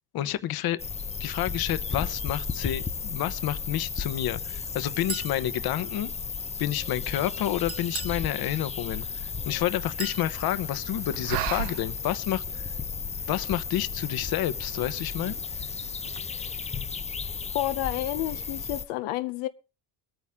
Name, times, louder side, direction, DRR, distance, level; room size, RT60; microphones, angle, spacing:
voice 1, 0.1-0.8 1.2-6.1 6.6-9.1 9.5-12.6 13.3-15.4, left 12 dB, 50° left, 1.1 m, -29 dB
sound 1, 0.8-18.9, left 5 dB, 15° left, 0.6 m, -34 dB
Chink clink, 5.1-5.4 7.7-8.2 10.0-10.3, right 6 dB, 30° right, 1.4 m, -36 dB
sound 2, 7.2-16.2, right 14 dB, 85° right, 0.9 m, -41 dB
voice 2, 17.5-19.5, left 14 dB, 80° left, 0.9 m, -30 dB
21.5 x 9.2 x 3.6 m
supercardioid pair, 105°, 45 cm